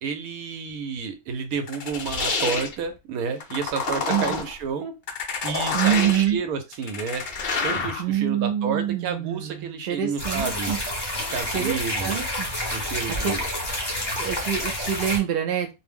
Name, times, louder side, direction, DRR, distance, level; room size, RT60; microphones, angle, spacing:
voice 1, 0.0-5.0 5.4-7.2 7.6-10.7 11.3-12.2 12.7-13.4, right 5 dB, 85° right, 7 dB, 1.1 m, -30 dB
sound 1, 1.7-2.7 3.4-4.5 5.1-6.3 6.7-8.0, left 4 dB, 60° left, 0.5 m, -28 dB
voice 2, 5.7-6.4 8.0-10.8 11.5-12.5 13.1-13.5 14.2-15.7, right 10 dB, 70° right, 3 dB, 0.5 m, -26 dB
sound 2, 10.2-15.2, left 1 dB, 25° left, 0.6 m, -29 dB
2.5 x 2.0 x 3.3 m, 0.25 s
omnidirectional pair, 1.5 m